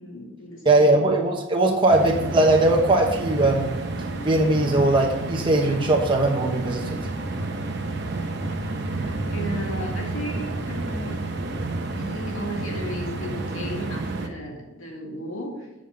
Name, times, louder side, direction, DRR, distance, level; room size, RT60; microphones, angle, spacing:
voice 1, 0.0-1.0 8.9-11.2 11.9-15.9, equal, 90° left, -1 dB, 2.1 m, -35 dB
voice 2, 0.6-3.8 4.2-7.0, right 2 dB, 25° right, 0 dB, 1.1 m, -20 dB
sound 1, 1.9-14.3, right 2 dB, 55° right, 0.9 m, -30 dB
7.6 x 5.3 x 5.1 m, 1.0 s
head